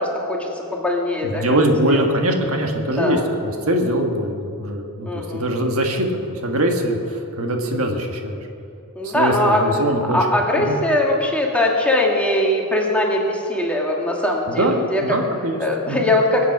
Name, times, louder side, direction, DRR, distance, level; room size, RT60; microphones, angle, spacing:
voice 1, 0.0-1.6 1.9-2.0 3.0-3.3 5.0-5.5 9.0-9.7 10.0-15.2 15.6-16.4, left 1 dB, 5° left, -1 dB, 1.7 m, -21 dB
voice 2, 1.2-8.4 9.0-10.2 10.6-10.7 14.5-15.6 15.9-16.0, right 1 dB, 70° right, 3 dB, 1.5 m, -22 dB
23.0 x 8.1 x 6.0 m, 2.7 s
head